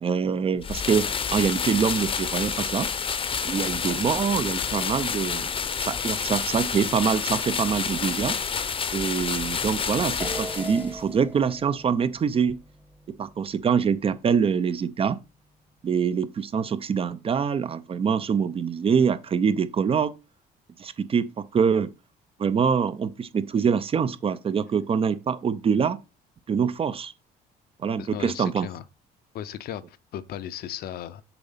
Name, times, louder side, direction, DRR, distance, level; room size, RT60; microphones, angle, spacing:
voice 1, 0.0-2.9 3.4-5.5 5.8-8.4 8.9-12.6 13.2-15.2 15.8-20.1 20.8-21.9 22.4-26.0 26.5-27.1 27.8-28.7, right 6 dB, 35° right, 0.6 m, -25 dB
sound 1, 0.6-11.0, left 6 dB, 30° left, 0.8 m, -29 dB
sound 2, 10.2-14.9, right 1 dB, 10° right, 0.9 m, -41 dB
voice 2, 28.0-28.8 29.3-31.2, left 11 dB, 65° left, 0.7 m, -36 dB
7.0 x 4.0 x 5.7 m
cardioid pair, 110°, 17 cm